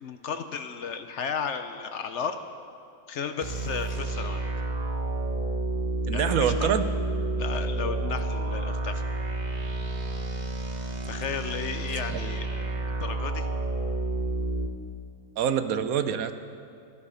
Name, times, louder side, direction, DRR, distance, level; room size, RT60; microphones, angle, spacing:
voice 1, 0.0-2.4 3.1-4.4 6.1-6.7 7.4-9.0 11.1-13.5, left 6 dB, 60° left, 8 dB, 0.9 m, -34 dB
sound 1, 3.4-14.7, right 2 dB, 35° right, 1.0 m, -30 dB
voice 2, 6.1-6.8 12.1-12.3 15.4-16.3, right 8 dB, 75° right, 11 dB, 1.1 m, -26 dB
13.5 x 13.0 x 5.6 m, 2.5 s
omnidirectional pair, 1.5 m